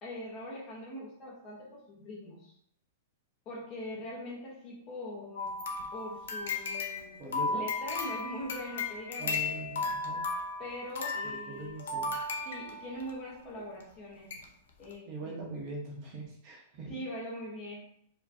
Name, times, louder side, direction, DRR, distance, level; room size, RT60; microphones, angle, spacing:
voice 1, 0.0-2.5 3.4-5.5 5.9-9.4 10.6-11.8 12.4-14.3 14.8-15.4 16.9-17.8, left 1 dB, 20° left, -4 dB, 1.2 m, -42 dB
sound 1, 5.4-13.1 13.8-13.9 14.3-14.4 14.8-14.9, left 3 dB, 75° left, 0.8 m, -35 dB
voice 2, 7.2-7.6 9.2-10.3 11.2-12.1 15.1-16.9, right 3 dB, 30° right, -3 dB, 1.2 m, -41 dB
4.9 x 3.1 x 2.8 m, 0.69 s
supercardioid pair, 180°, 0 cm